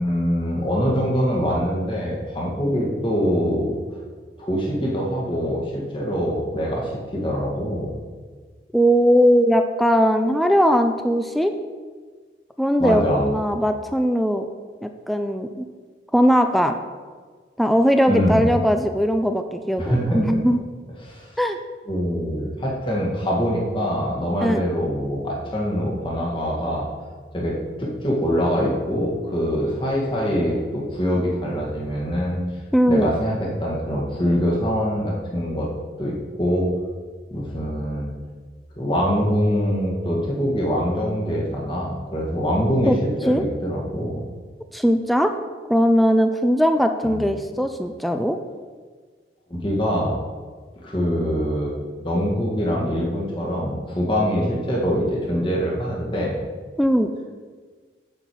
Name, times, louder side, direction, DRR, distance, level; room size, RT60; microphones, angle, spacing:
voice 1, 0.0-3.8 4.4-7.9 12.8-13.4 18.1-18.5 19.8-20.4 21.0-21.3 21.9-26.9 27.3-32.4 32.9-35.7 36.0-36.7 37.3-38.1 38.8-44.2 47.0-47.3 49.5-50.2 50.8-51.7 52.0-56.4, equal, 30° left, -3 dB, 1.8 m, -24 dB
voice 2, 8.7-11.5 12.6-14.5 14.8-15.7 16.1-16.8 17.6-20.6 21.4-21.6 24.4-24.6 32.7-33.1 42.9-43.0 43.3-43.4 44.7-45.3 45.7-48.4 56.8-57.1, equal, ahead, 6 dB, 0.4 m, -19 dB
7.7 x 7.5 x 4.6 m, 1.5 s
head